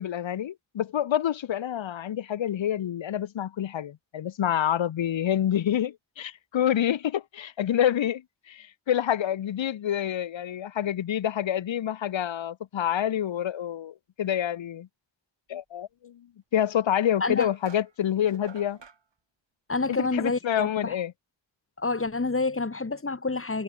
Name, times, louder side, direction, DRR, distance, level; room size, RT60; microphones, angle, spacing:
voice 1, 0.0-8.2 8.5-14.9 15.5-16.3 16.5-18.8 20.0-21.1, left 10 dB, 70° left, 0.7 m, -27 dB
sound 1, 17.4-19.0, right 5 dB, 65° right, 4.3 m, -48 dB
voice 2, 19.7-21.0 21.8-23.6, left 3 dB, 30° left, 2.2 m, -28 dB
wide cardioid pair, 110°, 47 cm